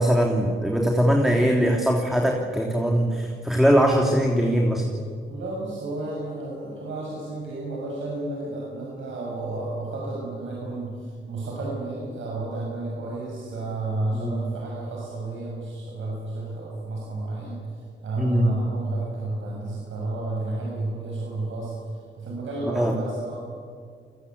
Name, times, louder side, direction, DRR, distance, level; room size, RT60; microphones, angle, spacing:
voice 1, 0.0-4.8 14.2-14.4 18.2-18.5 22.7-22.9, equal, ahead, 1 dB, 3.1 m, -21 dB
voice 2, 5.3-17.6 18.0-21.7 22.1-23.4, right 2 dB, 80° right, -4 dB, 7.0 m, -31 dB
29.5 x 20.5 x 8.6 m, 2.1 s
cardioid pair, 75°, 20 cm